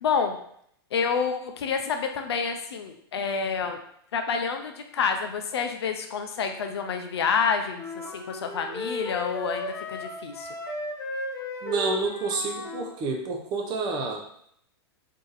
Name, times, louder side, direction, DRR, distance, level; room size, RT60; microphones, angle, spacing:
voice 1, 0.0-0.4 0.9-3.8 4.1-10.5, left 6 dB, 85° left, 5 dB, 0.4 m, -28 dB
sound 1, 7.7-12.9, left 2 dB, 20° left, 0.5 m, -35 dB
voice 2, 11.6-14.3, right 3 dB, 30° right, 2 dB, 0.6 m, -29 dB
2.7 x 2.4 x 3.9 m, 0.68 s
hypercardioid pair, 125°, 13 cm